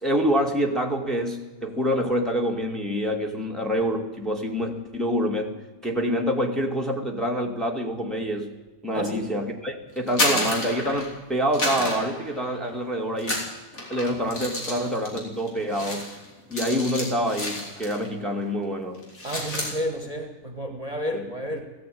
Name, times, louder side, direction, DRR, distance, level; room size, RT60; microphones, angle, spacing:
voice 1, 0.0-5.5 5.8-8.5 8.8-13.4 13.9-16.1 16.5-19.0 21.1-21.2, equal, ahead, 0 dB, 2.2 m, -26 dB
voice 2, 8.9-9.3 19.2-21.6, equal, 25° right, 5 dB, 2.1 m, -31 dB
sound 1, 10.0-11.2 11.5-12.8 13.2-18.1 18.4-18.6 18.9-19.8, left 1 dB, 70° left, 4.8 m, -30 dB
18.0 x 15.5 x 9.4 m, 1.2 s
omnidirectional pair, 1.5 m